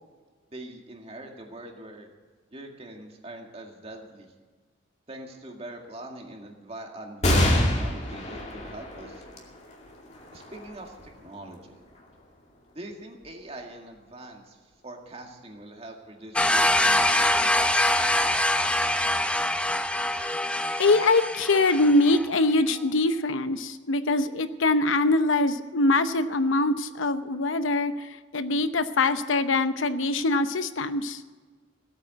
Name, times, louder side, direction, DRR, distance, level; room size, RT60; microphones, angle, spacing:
voice 1, 0.5-2.1 2.5-4.3 5.1-9.2 10.3-11.8 12.7-14.6 14.8-18.0, right 1 dB, 30° right, 2 dB, 2.1 m, -43 dB
sound 1, 7.2-14.1 14.7-14.8 15.9-16.5, left 1 dB, 35° left, 2.5 m, -29 dB
sound 2, 16.4-22.3, left 1 dB, 5° left, 0.6 m, -24 dB
voice 2, 20.8-31.2, left 2 dB, 85° left, 11 dB, 0.8 m, -23 dB
17.0 x 8.8 x 7.9 m, 1.4 s
head